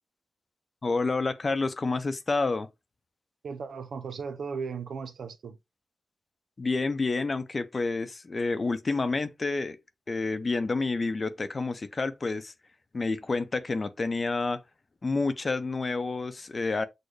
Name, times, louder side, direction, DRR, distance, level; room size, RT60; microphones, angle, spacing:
voice 1, 0.8-2.7 6.6-9.8 10.1-12.5 12.9-14.6 15.0-16.8, left 3 dB, 45° left, 0.6 m, -29 dB
voice 2, 3.4-5.6, right 5 dB, 85° right, 0.6 m, -36 dB
6.5 x 2.2 x 3.2 m
cardioid pair, 55°, 0 cm